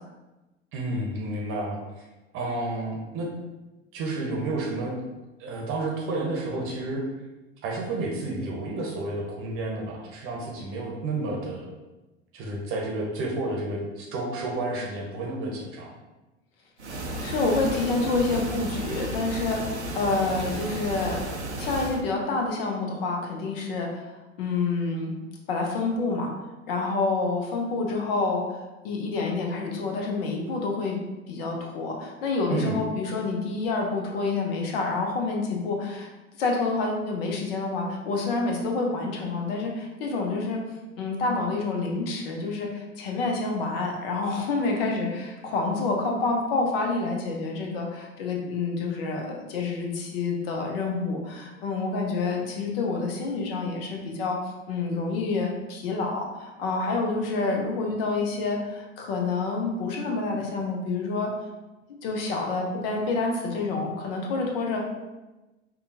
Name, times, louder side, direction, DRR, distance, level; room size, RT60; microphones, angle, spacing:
voice 1, 0.7-2.1 2.3-3.3 3.9-4.9 5.4-7.0 7.6-11.7 12.3-15.9 32.5-32.8, right 2 dB, 40° right, -1 dB, 0.8 m, -31 dB
sound 1, 16.8-22.0, right 2 dB, 90° right, 0.5 m, -33 dB
voice 2, 17.2-21.3 21.6-25.1 25.5-26.3 26.7-31.0 31.3-36.1 36.4-40.6 41.0-54.4 54.7-61.3 61.9-64.9, left 3 dB, 60° left, 1 dB, 0.8 m, -28 dB
5.2 x 2.3 x 2.7 m, 1.1 s
figure-of-eight pair, 75°, 33 cm